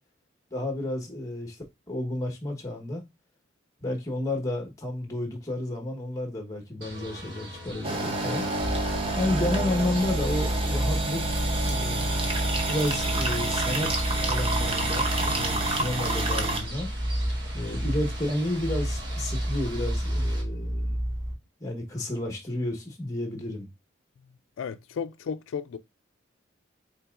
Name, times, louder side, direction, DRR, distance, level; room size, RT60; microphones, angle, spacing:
voice 1, 0.5-1.6 1.9-3.0 3.8-8.5 9.1-11.4 11.6-12.0 12.7-16.9 17.5-21.0 21.6-23.7, left 1 dB, 15° left, 1.1 m, -31 dB
sound 1, 6.8-20.4, right 1 dB, 55° right, 1.5 m, -42 dB
sound 2, 7.8-16.6, right 2 dB, 30° right, 0.7 m, -29 dB
sound 3, 8.6-21.3, equal, 85° right, 1.8 m, -30 dB
voice 2, 24.6-25.8, left 6 dB, 85° left, 0.4 m, -34 dB
5.5 x 3.9 x 2.4 m
head